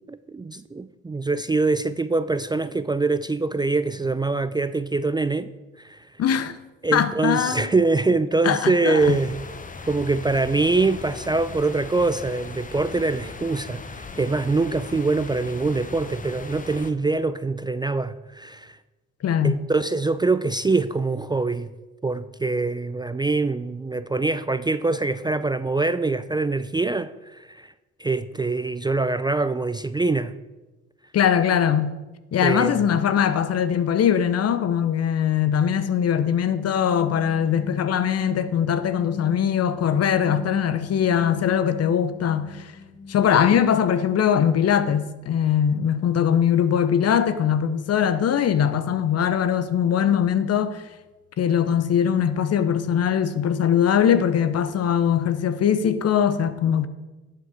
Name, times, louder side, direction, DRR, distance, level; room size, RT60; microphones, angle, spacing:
voice 1, 0.1-5.5 5.8-6.1 6.8-9.4 9.9-18.8 19.4-21.7 22.0-27.7 28.0-30.3 32.4-32.9, right 3 dB, 15° right, 0.4 m, -24 dB
voice 2, 6.2-6.6 6.9-7.7 8.4-9.2 19.2-19.6 31.1-32.0 32.3-42.7 43.1-50.8 51.4-56.9, left 8 dB, 50° left, 0.8 m, -21 dB
sound 1, 9.0-16.9, left 4 dB, 25° left, 1.0 m, -39 dB
sound 2, 36.0-43.8, left 4 dB, 85° left, 1.6 m, -40 dB
11.5 x 7.6 x 4.8 m
supercardioid pair, 65°, 31 cm